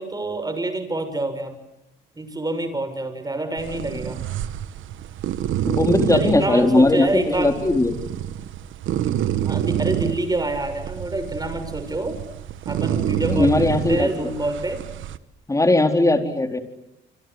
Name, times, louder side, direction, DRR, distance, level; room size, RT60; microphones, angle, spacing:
voice 1, 0.0-1.6 2.2-4.2 6.1-7.5 9.4-12.2 12.7-14.8, right 2 dB, 20° right, 9 dB, 6.6 m, -27 dB
sound 1, 3.6-15.2, right 11 dB, 75° right, 1.4 m, -28 dB
voice 2, 5.7-8.0 13.2-14.3 15.5-16.6, left 2 dB, 15° left, 6 dB, 4.3 m, -19 dB
27.5 x 26.0 x 8.2 m, 0.85 s
cardioid pair, 90°, 20 cm